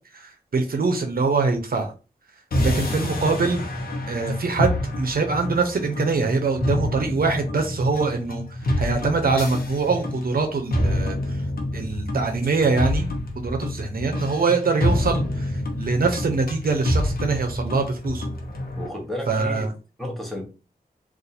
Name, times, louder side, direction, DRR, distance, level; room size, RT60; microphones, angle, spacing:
voice 1, 0.1-1.9 2.6-3.6 4.1-4.7 5.0-11.4 11.7-13.1 13.4-18.3 19.3-19.7, right 4 dB, 65° right, 4 dB, 0.6 m, -24 dB
sound 1, 2.5-18.9, left 1 dB, 65° left, 0.9 m, -27 dB
voice 2, 18.7-19.7 20.0-20.4, left 1 dB, ahead, 0 dB, 1.0 m, -32 dB
2.6 x 2.5 x 4.0 m, 0.33 s
wide cardioid pair, 90°, 16 cm